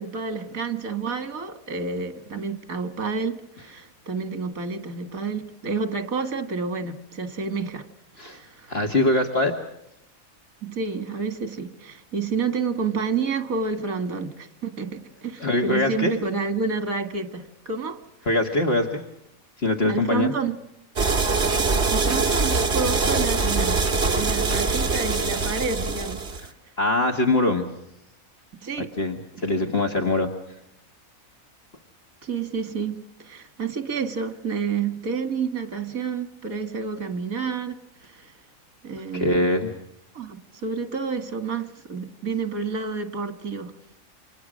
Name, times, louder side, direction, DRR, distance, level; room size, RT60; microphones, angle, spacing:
voice 1, 0.0-7.9 8.3-8.8 10.6-18.0 19.9-20.6 21.9-23.8 24.1-26.3 28.6-28.9 32.2-38.3 38.8-39.5 40.1-43.7, right 4 dB, 85° right, 2.3 m, -29 dB
voice 2, 8.7-9.5 15.4-16.1 18.3-19.0 19.6-20.3 26.8-27.7 29.0-30.3 39.1-39.7, left 2 dB, 45° left, 1.9 m, -22 dB
sound 1, 21.0-26.5, right 4 dB, 50° right, 2.2 m, -23 dB
28.5 x 26.0 x 6.3 m
omnidirectional pair, 1.4 m